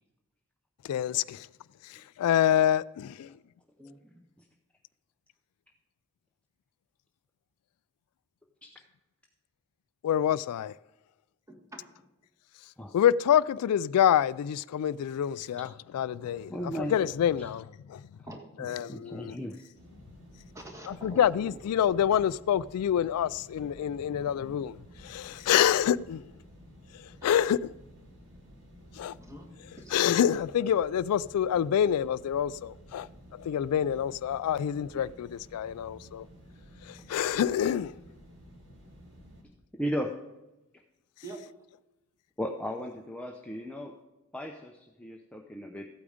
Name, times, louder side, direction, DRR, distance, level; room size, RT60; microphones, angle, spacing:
voice 1, 0.8-1.5 1.8-3.3 10.0-10.7 12.9-18.0 18.6-19.4 20.9-26.3 26.9-27.7 29.0-29.1 29.9-33.1 33.3-36.3 36.8-37.9, left 9 dB, 85° left, 0.3 m, -27 dB
voice 2, 3.8-4.1 11.5-12.1 18.3-18.8 20.5-21.6 29.2-29.5 29.8-30.0 41.2-41.4, right 2 dB, 15° right, 1.7 m, -46 dB
voice 3, 16.5-17.0 17.4-17.5 18.6-19.6 39.7-40.1 42.4-43.9 44.3-45.9, equal, 5° left, 0.6 m, -36 dB
sound 1, 19.8-39.4, equal, 60° right, 2.7 m, -53 dB
14.5 x 8.6 x 5.0 m
head